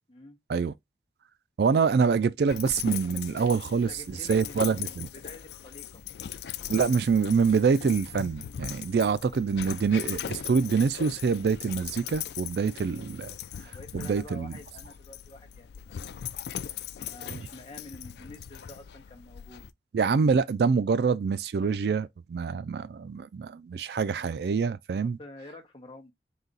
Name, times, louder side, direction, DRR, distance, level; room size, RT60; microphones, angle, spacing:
voice 1, 1.6-5.1 6.7-13.3 13.9-14.5 19.9-25.2, right 5 dB, 65° right, 0.3 m, -26 dB
Dog, 2.5-19.7, left 10 dB, 65° left, 0.3 m, -39 dB
voice 2, 3.7-6.0 13.6-16.0 17.0-19.7 25.0-26.1, left 2 dB, 30° left, 1.0 m, -48 dB
4.0 x 2.9 x 3.9 m
head